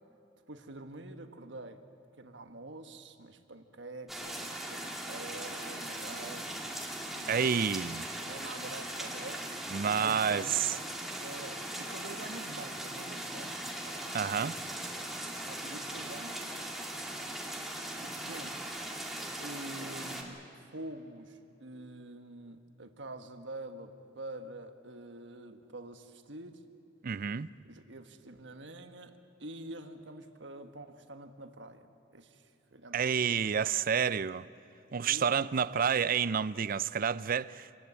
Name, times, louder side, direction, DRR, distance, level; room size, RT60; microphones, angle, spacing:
voice 1, 0.5-1.8 2.2-6.5 7.1-7.7 8.0-9.5 9.9-10.8 11.2-14.4 15.5-16.4 18.0-18.7 19.4-26.6 27.6-33.5 35.0-35.4 35.7-35.8, right 2 dB, 70° right, 1.4 m, -46 dB
sound 1, 4.1-20.2, right 1 dB, ahead, 2.2 m, -39 dB
voice 2, 7.3-8.1 9.7-10.7 14.1-14.5 27.0-27.5 32.9-34.4 34.9-37.8, right 7 dB, 50° right, 0.5 m, -29 dB
26.5 x 19.5 x 8.2 m
head